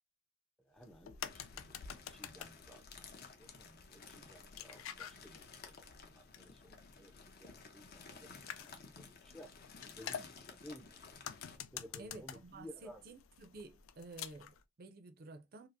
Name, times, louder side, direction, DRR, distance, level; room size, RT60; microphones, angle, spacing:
voice 1, 0.6-3.1 3.4-9.5 9.8-10.9 11.7-13.0, equal, ahead, 0.5 m, -56 dB
sound 1, 0.8-14.6, left 8 dB, 85° left, 0.4 m, -50 dB
sound 2, 1.2-11.6, left 5 dB, 50° left, 0.8 m, -55 dB
voice 2, 12.0-15.7, right 2 dB, 50° right, 0.5 m, -52 dB
4.5 x 2.0 x 2.6 m
head